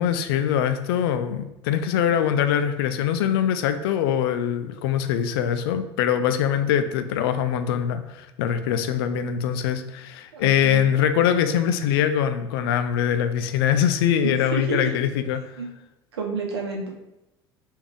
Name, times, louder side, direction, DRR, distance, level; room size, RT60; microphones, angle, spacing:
voice 1, 0.0-15.4, left 9 dB, 70° left, 9 dB, 0.4 m, -23 dB
voice 2, 10.3-10.9 14.2-14.9 15.6-15.7 16.1-16.9, right 4 dB, 85° right, 0 dB, 0.8 m, -30 dB
3.3 x 2.6 x 3.6 m, 0.91 s
hypercardioid pair, 70°, 13 cm